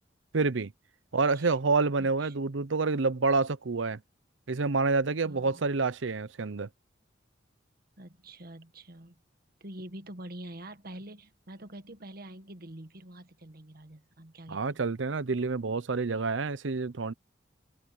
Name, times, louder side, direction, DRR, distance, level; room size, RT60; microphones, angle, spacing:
voice 1, 0.3-0.7 1.1-4.0 4.5-6.7 14.5-17.1, right 4 dB, 85° right, 0.7 m, -28 dB
voice 2, 2.0-2.3 5.2-5.7 8.0-9.2 9.6-14.8, right 1 dB, 55° right, 1.7 m, -46 dB
open air
head